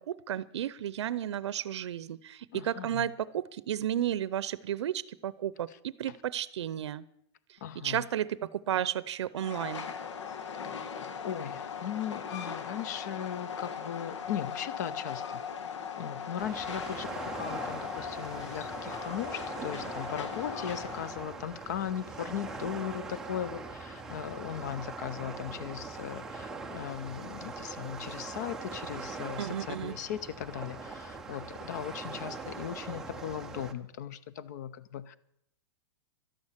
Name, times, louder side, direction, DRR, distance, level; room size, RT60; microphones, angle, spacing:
voice 1, 0.1-7.0 7.8-9.9 29.4-29.9, right 10 dB, 70° right, 0.6 m, -33 dB
voice 2, 2.5-3.1 5.7-5.8 6.1-6.2 7.6-8.1 10.5-10.7 11.2-15.4 15.9-35.2, left 9 dB, 35° left, 0.7 m, -38 dB
Train, 9.4-21.3, left 6 dB, 85° left, 1.7 m, -39 dB
sound 1, 16.4-33.7, right 4 dB, 5° right, 0.5 m, -42 dB
12.5 x 11.0 x 7.4 m
supercardioid pair, 180°, 15 cm